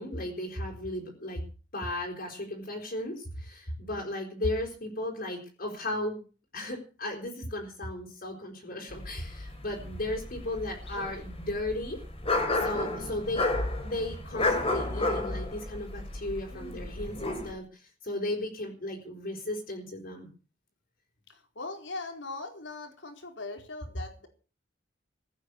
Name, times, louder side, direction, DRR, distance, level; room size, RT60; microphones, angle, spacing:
voice 1, 0.0-1.4 1.7-6.2 6.5-12.0 12.6-13.4 13.8-20.3, left 1 dB, 50° left, 0 dB, 4.6 m, -35 dB
sound 1, 8.9-17.5, left 2 dB, 30° left, 4.1 m, -32 dB
voice 2, 21.3-24.3, left 3 dB, 80° left, 5 dB, 4.4 m, -40 dB
16.5 x 9.7 x 8.4 m, 0.38 s
head